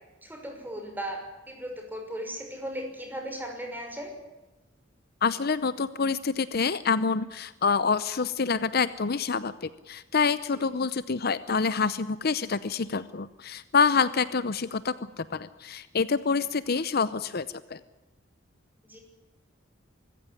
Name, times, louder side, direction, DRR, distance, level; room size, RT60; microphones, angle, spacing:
voice 1, 0.2-4.1 10.5-10.6 16.3-16.4 18.8-19.0, equal, 10° right, 3 dB, 6.0 m, -37 dB
voice 2, 5.2-17.8, left 5 dB, 55° left, 15 dB, 0.7 m, -27 dB
24.5 x 15.0 x 9.9 m, 1.1 s
head